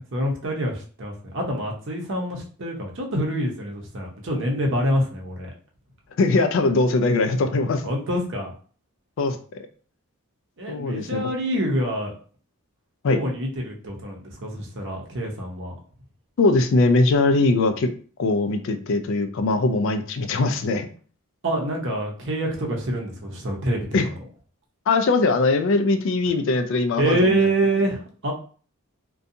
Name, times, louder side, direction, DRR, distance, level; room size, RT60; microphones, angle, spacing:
voice 1, 0.1-5.5 7.8-8.5 10.6-12.1 13.1-15.7 21.4-23.9 27.0-28.3, right 1 dB, 55° right, 0 dB, 0.7 m, -26 dB
voice 2, 6.2-7.8 9.2-9.4 10.7-11.2 13.0-13.2 16.4-17.9 18.2-20.9 23.9-24.1 24.9-27.5, left 3 dB, 60° left, 8 dB, 0.3 m, -21 dB
2.6 x 2.2 x 2.6 m, 0.42 s
head